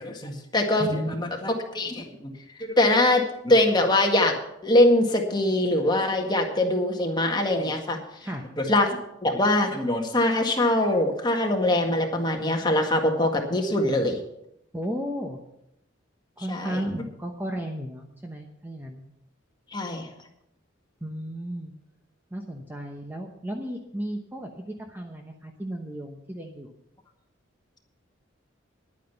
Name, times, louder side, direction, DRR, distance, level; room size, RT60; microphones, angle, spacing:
voice 1, 0.0-2.3 2.6-4.4 4.6-8.0 8.6-14.2 16.5-16.8 19.7-20.1, left 1 dB, 20° left, 2 dB, 1.8 m, -23 dB
voice 2, 0.8-1.2 8.2-8.5 14.7-15.4 16.4-19.0 21.0-21.7 22.3-26.7, equal, 10° right, 2 dB, 0.9 m, -34 dB
11.0 x 9.2 x 7.0 m, 0.82 s
head